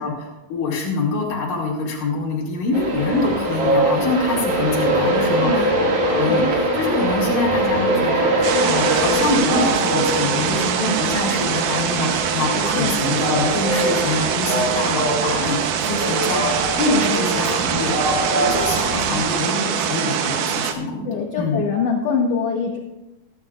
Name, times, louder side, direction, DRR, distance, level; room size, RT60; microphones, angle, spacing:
voice 1, 0.0-18.1 18.3-21.1 21.4-21.7, left 3 dB, 85° left, -3 dB, 3.7 m, -25 dB
Train, 2.7-19.3, right 1 dB, 50° right, 2.8 m, -23 dB
voice 2, 5.4-5.7 6.2-6.5 12.7-13.0 19.1-19.2 21.0-22.8, left 6 dB, 65° left, 2 dB, 1.7 m, -24 dB
sound 1, 8.4-20.7, right 8 dB, 80° right, 2.4 m, -23 dB
20.5 x 10.5 x 2.4 m, 0.98 s
omnidirectional pair, 3.8 m